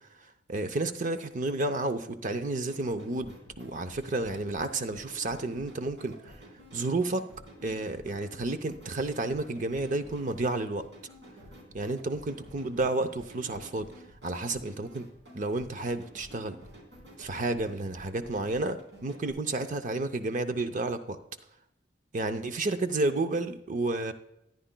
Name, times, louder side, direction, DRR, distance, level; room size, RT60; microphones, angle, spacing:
voice 1, 0.5-6.4 6.7-7.3 7.6-10.9 11.7-13.9 14.2-15.1 15.3-16.6 17.2-21.2 22.1-24.1, right 2 dB, 45° right, 0.6 m, -31 dB
sound 1, 2.7-19.3, equal, 70° right, 3.8 m, -51 dB
14.0 x 10.0 x 2.2 m
head